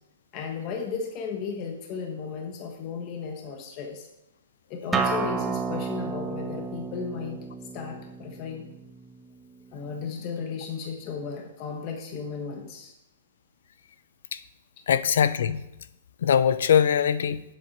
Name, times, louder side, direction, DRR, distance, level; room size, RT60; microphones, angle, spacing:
voice 1, 0.3-4.1 4.7-7.4 7.7-8.7 9.7-12.9, left 5 dB, 30° left, 3 dB, 1.4 m, -35 dB
Acoustic guitar, 4.9-10.1, right 5 dB, 10° right, 0.7 m, -32 dB
voice 2, 14.9-15.6 16.2-17.4, left 8 dB, 75° left, 15 dB, 0.7 m, -22 dB
8.0 x 7.5 x 6.6 m, 0.86 s
hypercardioid pair, 160°, 0 cm